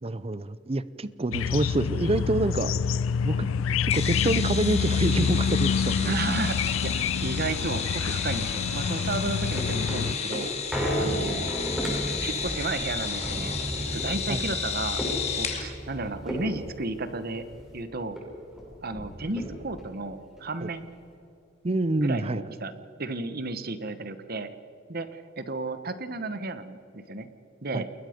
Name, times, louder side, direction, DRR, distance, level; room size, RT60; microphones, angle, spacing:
voice 1, 0.0-2.7 3.2-3.5 3.8-6.1 14.3-14.4 20.6-20.7 21.6-22.4 27.7-27.8, right 2 dB, 30° right, 16 dB, 0.6 m, -27 dB
sound 1, 1.3-10.2, left 6 dB, 90° left, 0.4 m, -27 dB
sound 2, 3.9-15.6, left 6 dB, 35° left, 2.7 m, -33 dB
voice 2, 6.0-10.5 11.0-11.5 12.2-13.5 13.9-15.0 15.3-17.4 17.7-18.2 18.8-20.9 22.0-22.7 23.0-24.5 24.9-27.3 27.6-27.9, right 3 dB, 50° right, 11 dB, 1.3 m, -33 dB
sound 3, 9.1-17.8 18.2-18.3 18.5-19.9 20.4-20.5, equal, 5° right, 6.2 m, -33 dB
29.0 x 21.0 x 5.2 m, 2.9 s
head